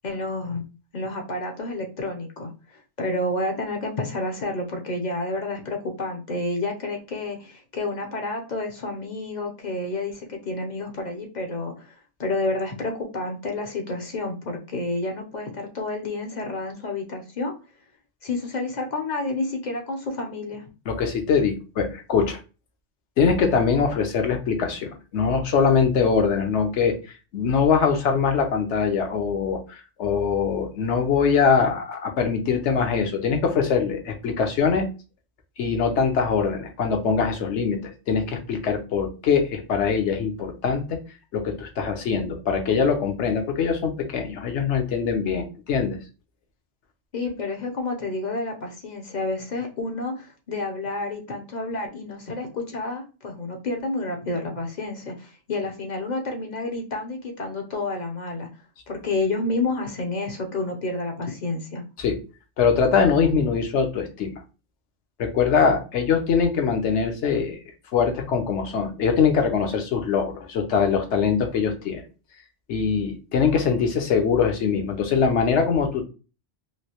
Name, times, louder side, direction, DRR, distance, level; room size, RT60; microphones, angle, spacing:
voice 1, 0.0-0.6 0.9-11.9 12.2-17.5 18.2-20.6 47.1-58.5 58.9-61.8, left 2 dB, 45° left, 2 dB, 0.7 m, -29 dB
voice 2, 20.9-22.4 23.2-26.9 27.3-34.9 35.6-37.8 38.1-41.0 41.3-46.0 62.0-62.2 62.6-64.4 65.2-67.6 67.9-72.0 72.7-76.0, left 6 dB, 70° left, 4 dB, 1.0 m, -22 dB
3.1 x 2.7 x 2.8 m, 0.32 s
omnidirectional pair, 1.3 m